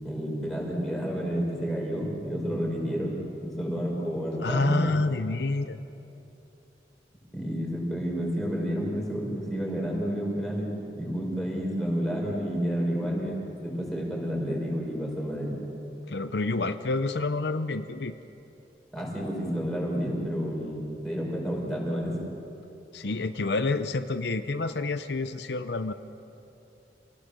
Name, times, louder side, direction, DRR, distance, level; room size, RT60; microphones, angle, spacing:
voice 1, 0.0-4.9 7.3-10.7 11.0-15.5 18.9-22.2, equal, ahead, -4 dB, 5.6 m, -30 dB
voice 2, 4.4-5.8 16.1-18.1 22.9-25.9, left 3 dB, 75° left, 10 dB, 0.7 m, -28 dB
28.0 x 18.0 x 6.8 m, 2.9 s
head